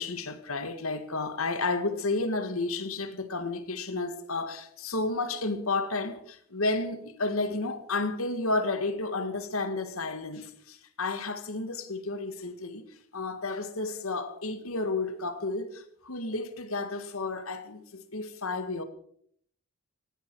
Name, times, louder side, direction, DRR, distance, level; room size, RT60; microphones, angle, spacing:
voice 1, 0.0-12.8 13.1-18.8, left 3 dB, 80° left, 1.7 m, -32 dB
18.0 x 15.5 x 4.7 m
head